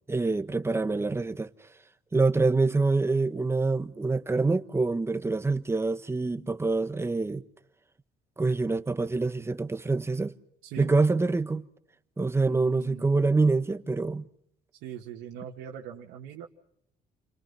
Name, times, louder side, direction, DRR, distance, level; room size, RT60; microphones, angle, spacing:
voice 1, 0.1-1.7 2.1-7.4 8.4-10.3 10.8-11.7 12.2-14.3, right 3 dB, 15° right, 1.3 m, -26 dB
voice 2, 10.6-10.9 12.4-13.1 14.8-16.5, right 9 dB, 90° right, 2.1 m, -41 dB
29.5 x 23.0 x 5.7 m
cardioid pair, 110°, 17 cm